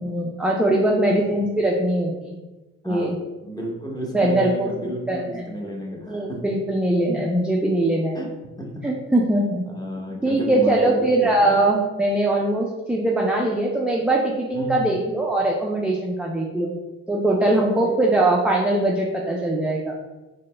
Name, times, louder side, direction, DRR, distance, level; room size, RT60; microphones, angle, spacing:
voice 1, 0.0-2.1 2.8-3.1 4.1-4.7 5.1-5.5 6.1-8.2 8.8-9.6 10.2-16.7 17.1-19.9, right 1 dB, 5° right, -2 dB, 0.3 m, -21 dB
voice 2, 3.4-6.4 8.1-8.3 8.6-8.8 9.7-11.1 11.4-11.6 14.5-15.0 17.3-17.4 17.7-17.9, equal, 15° left, -1 dB, 0.8 m, -32 dB
3.9 x 2.1 x 3.2 m, 1.1 s
cardioid pair, 90°, 30 cm